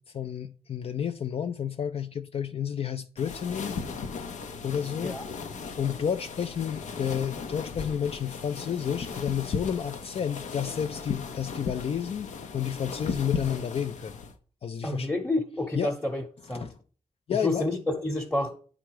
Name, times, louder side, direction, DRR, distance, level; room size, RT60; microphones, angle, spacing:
voice 1, 0.0-3.8 4.6-5.2 5.8-14.2 14.6-15.1 15.7-15.9 16.5-16.7 17.3-17.6, left 8 dB, 55° left, 0.4 m, -31 dB
sound 1, 3.2-14.3, left 5 dB, 90° left, 0.8 m, -37 dB
voice 2, 14.8-16.2 16.5-16.7 17.4-18.5, left 2 dB, 10° left, 0.9 m, -29 dB
9.1 x 3.7 x 4.7 m
cardioid pair, 90°, 12 cm